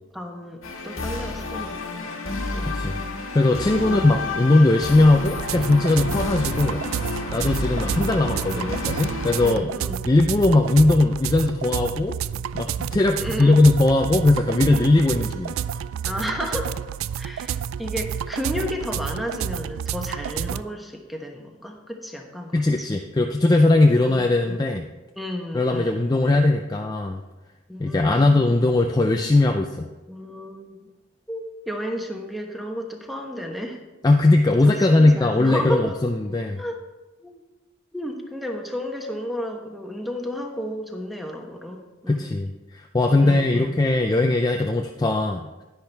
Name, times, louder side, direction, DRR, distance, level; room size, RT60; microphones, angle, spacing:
voice 1, 0.1-2.1 2.5-2.8 3.8-4.1 8.3-8.8 9.4-10.0 13.2-13.5 16.0-16.7 17.2-22.9 24.2-24.7 25.2-26.0 27.7-28.4 30.1-30.8 31.3-33.8 34.8-35.9 36.6-36.8 37.2-37.4 37.9-42.2 43.2-43.8, equal, ahead, 2 dB, 1.0 m, -32 dB
sound 1, 0.6-9.5, left 3 dB, 85° left, 1.6 m, -30 dB
voice 2, 2.6-3.0 3.3-9.7 10.1-12.1 12.5-15.6 22.5-24.8 25.5-27.2 27.8-29.9 34.0-36.6 42.1-45.5, left 2 dB, 20° left, 3 dB, 0.4 m, -19 dB
sound 2, 5.2-20.6, right 9 dB, 85° right, 0.3 m, -30 dB
10.5 x 10.0 x 3.4 m, 1.1 s
head